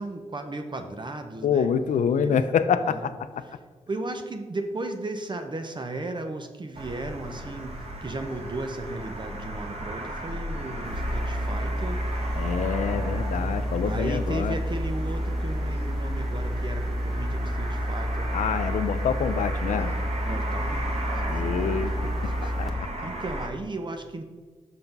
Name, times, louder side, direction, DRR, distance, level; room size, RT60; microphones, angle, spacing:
voice 1, 0.0-1.7 2.2-2.5 2.8-3.1 3.9-12.0 13.8-18.3 20.2-22.5 23.0-24.2, right 2 dB, 40° right, 7 dB, 0.8 m, -35 dB
voice 2, 1.4-3.4 12.4-14.6 18.3-19.9 21.3-22.1 22.4-23.1, left 7 dB, 80° left, 12 dB, 0.5 m, -26 dB
sound 1, 6.7-23.5, right 1 dB, 55° right, 1.3 m, -36 dB
sound 2, 10.8-22.7, equal, ahead, 1.1 m, -29 dB
5.8 x 5.7 x 5.2 m, 1.5 s
cardioid pair, 50°, 13 cm